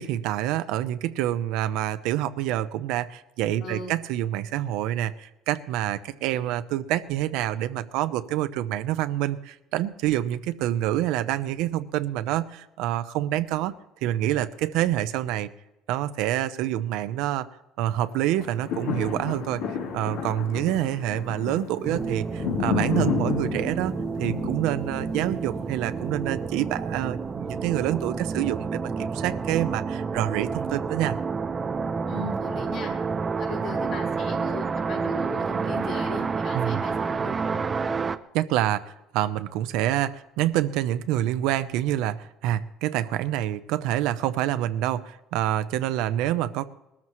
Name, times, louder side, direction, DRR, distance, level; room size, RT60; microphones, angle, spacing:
voice 1, 0.0-13.7 14.0-15.5 15.9-17.5 17.8-19.6 19.9-23.9 24.2-31.2 36.5-36.8 38.3-38.8 39.1-46.7, right 13 dB, 75° right, 12 dB, 0.7 m, -27 dB
voice 2, 3.6-4.0 32.1-32.9 33.4-37.6, left 2 dB, 60° left, -2 dB, 4.6 m, -37 dB
sound 1, 18.3-26.5 27.1-27.2, left 5 dB, 80° left, 3.2 m, -31 dB
sound 2, 21.8-38.2, right 5 dB, 25° right, 0.5 m, -29 dB
20.5 x 13.5 x 3.1 m, 0.95 s
cardioid pair, 150°, 0 cm